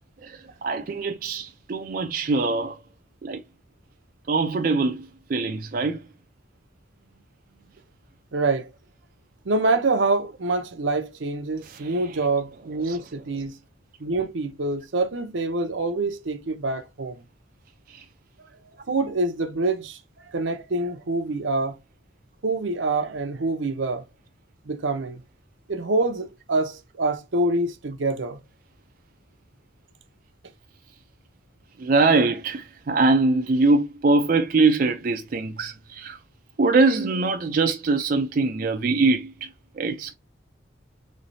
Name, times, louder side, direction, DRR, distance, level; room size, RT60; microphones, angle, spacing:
voice 1, 0.2-2.8 3.2-3.4 4.3-6.1 11.6-12.3 12.8-13.0 17.9-18.0 31.8-36.2 36.6-40.1, right 3 dB, 45° right, 0.4 m, -23 dB
voice 2, 8.3-8.7 9.5-13.5 14.0-17.2 18.9-20.0 20.3-21.8 22.4-24.0 24.7-25.2 25.7-28.4, right 2 dB, 80° right, 0.7 m, -26 dB
3.8 x 3.2 x 2.6 m
head